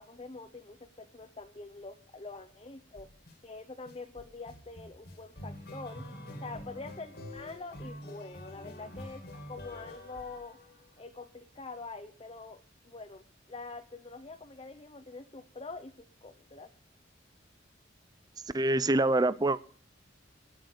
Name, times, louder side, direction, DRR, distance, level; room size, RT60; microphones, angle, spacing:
voice 1, 0.0-3.1 3.4-6.0 6.4-9.2 9.5-10.6 11.0-16.7, left 3 dB, 30° left, 7 dB, 0.8 m, -45 dB
sound 1, 3.0-3.3 3.9-11.0, left 1 dB, 55° left, 2.5 m, -46 dB
voice 2, 18.5-19.6, right 2 dB, 20° right, 16 dB, 0.6 m, -25 dB
19.0 x 6.5 x 6.7 m, 0.43 s
head